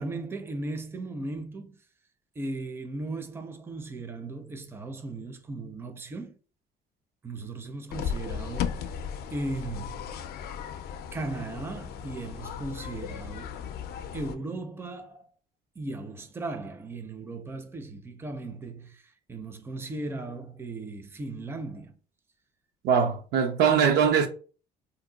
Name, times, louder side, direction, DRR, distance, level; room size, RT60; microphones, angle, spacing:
voice 1, 0.0-1.8 2.4-6.3 7.2-9.0 9.3-10.1 11.1-13.6 14.1-15.2 15.8-21.9, right 2 dB, 15° right, 0.5 m, -37 dB
sound 1, 7.9-14.4, left 8 dB, 70° left, 0.4 m, -36 dB
voice 2, 22.8-24.3, right 7 dB, 75° right, 0.6 m, -22 dB
2.7 x 2.2 x 3.8 m
cardioid pair, 110°, 17 cm